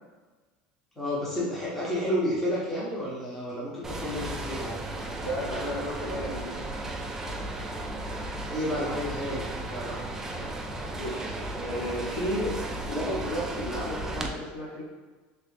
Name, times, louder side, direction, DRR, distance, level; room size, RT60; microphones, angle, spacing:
voice 1, 1.0-4.8 8.5-10.0, equal, 10° left, -7 dB, 0.8 m, -31 dB
sound 1, 3.8-14.3, right 2 dB, 10° right, 0.3 m, -35 dB
voice 2, 5.2-6.6 10.9-12.6 12.8-14.8, equal, 50° left, -4 dB, 1.0 m, -33 dB
3.3 x 3.0 x 3.2 m, 1.3 s
cardioid pair, 160°, 4 cm